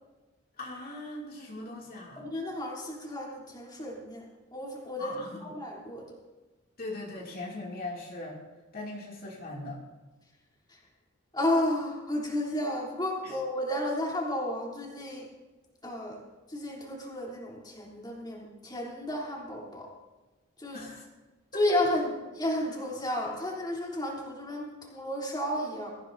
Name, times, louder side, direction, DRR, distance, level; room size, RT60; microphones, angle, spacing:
voice 1, 0.6-2.2 5.0-5.5 6.8-8.4 8.7-9.8 13.2-13.4 20.7-21.1, left 2 dB, 45° left, -3 dB, 2.7 m, -40 dB
voice 2, 2.2-4.2 4.5-6.1 11.3-15.2 15.8-16.2 16.5-19.9 20.6-20.8 21.5-22.0 22.4-25.9, left 1 dB, 20° left, -3 dB, 3.4 m, -32 dB
22.0 x 15.0 x 2.7 m, 1.2 s
head